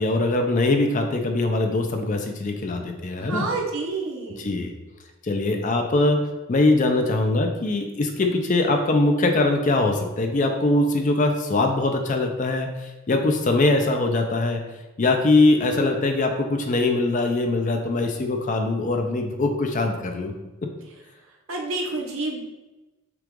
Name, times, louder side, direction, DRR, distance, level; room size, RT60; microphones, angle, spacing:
voice 1, 0.0-3.5 4.4-4.7 5.2-14.6 15.0-20.3, left 2 dB, 35° left, 4 dB, 0.5 m, -22 dB
voice 2, 3.2-4.5 21.5-22.4, right 3 dB, 70° right, 0 dB, 0.9 m, -29 dB
5.9 x 2.4 x 3.7 m, 1.1 s
head